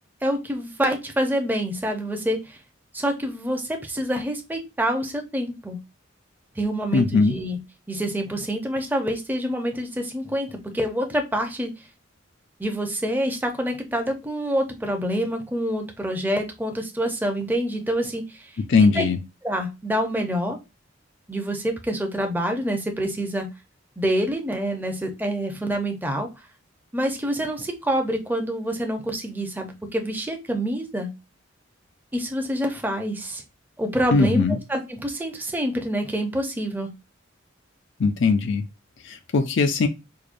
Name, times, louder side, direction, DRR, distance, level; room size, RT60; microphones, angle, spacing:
voice 1, 0.2-2.6 2.9-5.8 6.6-7.6 7.9-11.7 12.6-18.5 18.8-19.1 19.4-20.6 21.3-23.5 24.0-26.3 26.9-31.1 32.1-33.4 33.8-36.9, equal, 10° right, 0.6 m, -26 dB
voice 2, 6.9-7.3 18.7-19.2 34.1-34.6 38.0-38.6 39.3-39.9, left 4 dB, 65° left, 0.5 m, -19 dB
4.8 x 2.2 x 2.5 m
head